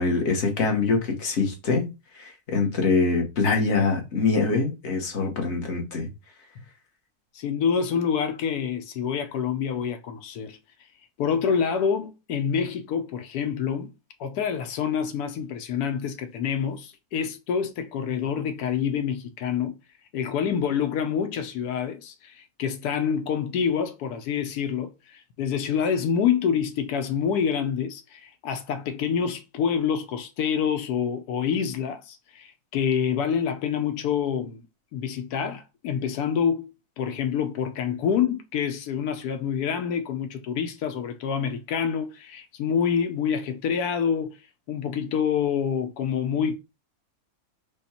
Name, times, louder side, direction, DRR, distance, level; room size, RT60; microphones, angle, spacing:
voice 1, 0.0-6.1, left 4 dB, 50° left, 1.4 m, -24 dB
voice 2, 7.3-10.6 11.2-13.9 14.2-19.8 20.1-34.6 34.9-36.7 37.0-44.4 44.7-46.6, left 7 dB, 90° left, 1.2 m, -27 dB
5.1 x 2.3 x 4.2 m
omnidirectional pair, 1.6 m